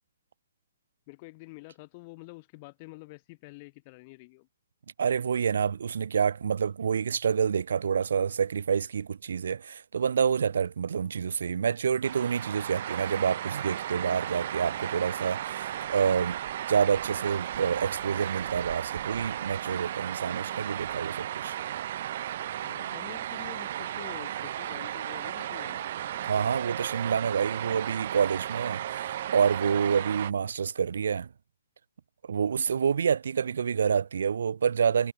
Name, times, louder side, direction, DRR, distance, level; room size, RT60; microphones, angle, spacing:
voice 1, 1.1-4.5 20.2-20.5 22.6-25.9 29.9-30.1, left 26 dB, 20° left, 1.3 m, -47 dB
voice 2, 5.0-16.4 16.7-21.6 26.2-31.3 32.3-35.1, right 7 dB, 55° right, 0.4 m, -28 dB
sound 1, 12.0-30.3, right 12 dB, 30° right, 1.7 m, -35 dB
hypercardioid pair, 180°, 0 cm